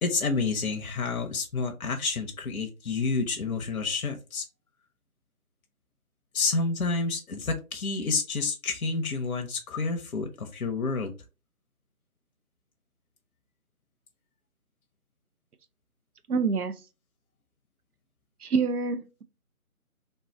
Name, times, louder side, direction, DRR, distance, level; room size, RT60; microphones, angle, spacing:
voice 1, 0.0-4.4 6.3-11.1, left 4 dB, 70° left, 0.7 m, -29 dB
voice 2, 16.3-16.7 18.4-19.2, right 5 dB, 85° right, 0.6 m, -26 dB
3.2 x 2.1 x 4.0 m
figure-of-eight pair, 160°, 44 cm